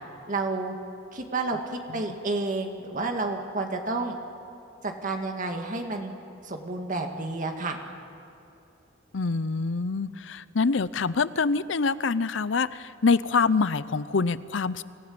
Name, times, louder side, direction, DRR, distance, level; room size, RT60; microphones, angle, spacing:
voice 1, 0.3-0.8 1.1-4.2 4.8-6.1 6.4-7.8, right 3 dB, 45° right, 3 dB, 2.0 m, -30 dB
voice 2, 9.1-12.7 13.0-14.8, left 4 dB, 70° left, 17 dB, 0.6 m, -25 dB
26.0 x 16.5 x 8.7 m, 2.7 s
head